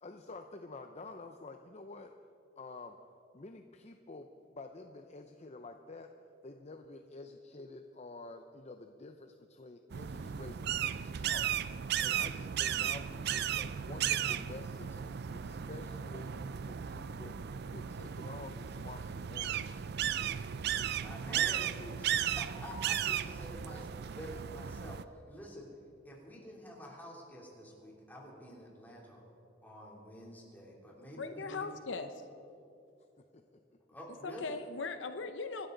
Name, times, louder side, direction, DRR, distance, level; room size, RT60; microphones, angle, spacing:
voice 1, 0.0-2.1 2.6-3.0 3.3-6.1 6.4-19.8 33.2-33.8, left 3 dB, 35° left, 6 dB, 0.7 m, -50 dB
Cooper's Hawk, 9.9-25.0, right 9 dB, 55° right, 0.4 m, -35 dB
voice 2, 20.9-23.9 24.1-25.7 26.0-29.2 29.6-31.7 33.9-34.6, equal, 10° left, -3 dB, 3.3 m, -48 dB
voice 3, 31.2-32.2 34.2-35.7, left 4 dB, 70° left, 8 dB, 0.7 m, -39 dB
26.0 x 12.5 x 4.0 m, 2.7 s
head